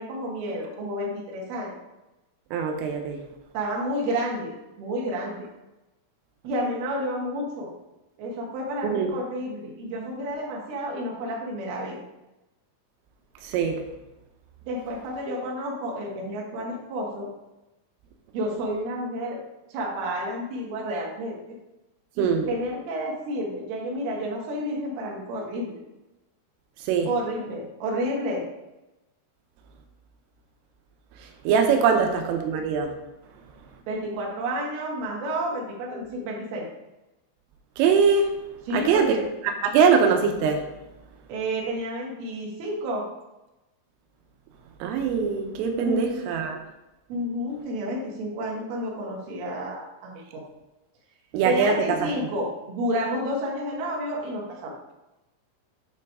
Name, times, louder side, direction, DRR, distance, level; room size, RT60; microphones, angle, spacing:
voice 1, 0.0-1.7 3.5-5.5 6.4-7.7 8.2-12.0 14.7-17.3 18.3-19.4 19.7-21.4 22.2-25.8 27.1-28.4 31.9-32.1 33.9-36.7 38.7-39.2 41.3-43.1 45.8-46.2 47.1-50.4 51.4-54.7, equal, 60° right, -2 dB, 3.2 m, -30 dB
voice 2, 2.5-3.2 8.8-9.1 13.4-13.8 22.2-22.5 26.9-27.1 31.4-32.9 37.8-38.4 38.7-39.2 39.6-40.6 44.8-46.6 51.3-52.1, right 6 dB, 90° right, 4 dB, 3.5 m, -22 dB
8.1 x 4.6 x 4.8 m, 0.99 s
omnidirectional pair, 5.7 m